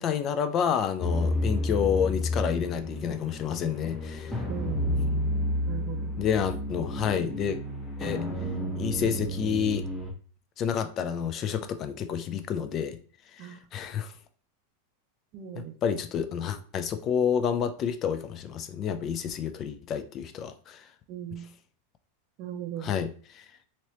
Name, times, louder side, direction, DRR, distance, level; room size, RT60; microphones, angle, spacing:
voice 1, 0.0-4.4 6.2-7.6 8.0-8.2 8.8-9.8 10.6-13.0 13.3-14.1 15.8-20.9 22.8-23.5, left 7 dB, 35° left, 0.4 m, -29 dB
sound 1, 1.0-10.1, left 1 dB, 5° left, 0.8 m, -31 dB
voice 2, 4.5-4.9 5.7-6.1 13.4-13.6 15.3-16.0 21.1-21.5 22.4-22.9, right 11 dB, 50° right, 0.5 m, -38 dB
3.0 x 2.9 x 2.9 m
hypercardioid pair, 115°, 0 cm